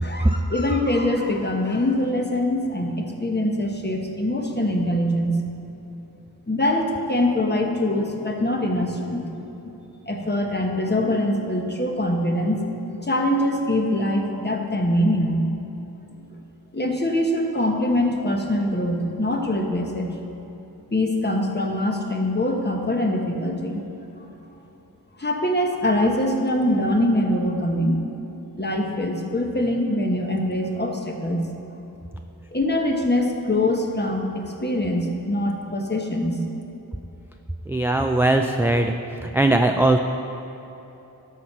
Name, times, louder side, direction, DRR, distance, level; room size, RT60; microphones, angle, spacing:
voice 1, 0.0-5.4 6.5-9.4 10.1-15.4 16.7-20.1 20.9-23.8 25.2-28.0 28.6-31.4 32.5-36.4, left 1 dB, 30° left, 2 dB, 1.1 m, -23 dB
voice 2, 37.7-38.9 39.2-40.0, right 2 dB, 5° right, 4 dB, 0.3 m, -19 dB
13.0 x 4.5 x 5.6 m, 3.0 s
wide cardioid pair, 60°, 37 cm